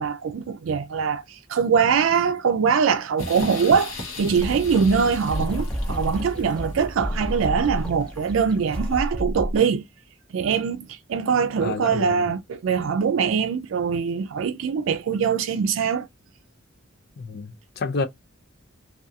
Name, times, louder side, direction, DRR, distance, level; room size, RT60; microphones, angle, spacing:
voice 1, 0.0-9.8 10.3-16.1, right 6 dB, 75° right, 0.4 m, -23 dB
sound 1, 3.2-8.3, left 1 dB, 80° left, 0.8 m, -36 dB
sound 2, 4.3-9.6, equal, 5° left, 0.6 m, -30 dB
voice 2, 11.6-12.3 17.2-18.0, left 4 dB, 55° left, 0.4 m, -29 dB
2.3 x 2.3 x 2.6 m
head